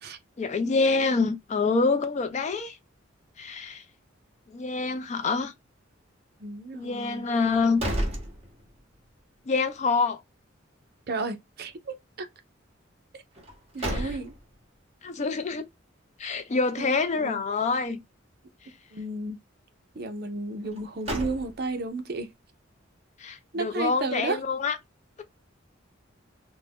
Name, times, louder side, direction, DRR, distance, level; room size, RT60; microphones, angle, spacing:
voice 1, 0.4-2.8 3.4-3.8 4.5-5.5 6.7-7.9 9.5-10.2 13.8-14.1 15.0-15.6 16.2-18.0 23.2-24.8, left 4 dB, 35° left, 0.4 m, -26 dB
voice 2, 6.4-7.3 11.1-12.3 13.1-13.2 13.7-14.3 16.8-17.4 18.9-19.4 20.0-22.3 23.5-24.4, right 2 dB, 50° right, 0.6 m, -33 dB
sound 1, 7.4-9.0 9.4-9.5 13.3-14.6 20.6-21.9, equal, 30° right, 0.9 m, -33 dB
2.5 x 2.1 x 3.3 m
head